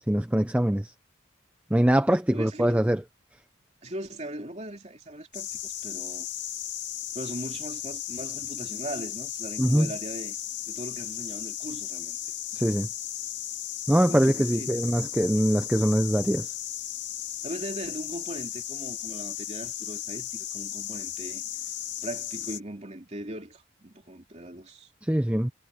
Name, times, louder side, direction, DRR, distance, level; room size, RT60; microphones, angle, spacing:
voice 1, 0.1-0.9 1.7-3.0 9.6-9.9 12.5-12.9 13.9-16.5 25.0-25.5, right 1 dB, 5° right, 0.5 m, -23 dB
voice 2, 2.3-2.8 3.8-6.3 7.1-10.4 10.7-12.3 14.1-14.8 17.4-21.4 22.0-24.9, right 1 dB, 35° right, 2.9 m, -39 dB
sound 1, 5.3-22.6, left 11 dB, 60° left, 2.1 m, -35 dB
head